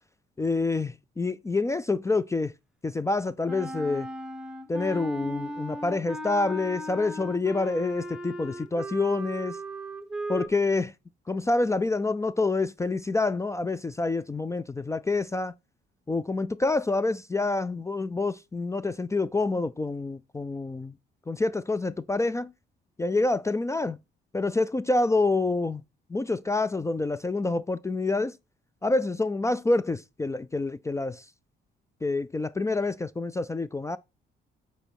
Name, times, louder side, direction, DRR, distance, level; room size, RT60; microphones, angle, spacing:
voice 1, 0.4-2.5 2.8-4.1 4.7-9.6 10.3-10.9 11.3-15.5 16.1-20.9 21.3-22.5 23.0-24.0 24.3-25.8 26.1-28.3 28.8-31.2 32.0-34.0, left 3 dB, 15° left, 0.3 m, -27 dB
Wind instrument woodwind instrument, 3.5-10.5, right 1 dB, 5° right, 1.1 m, -37 dB
8.8 x 4.3 x 4.5 m
cardioid pair, 90°, 20 cm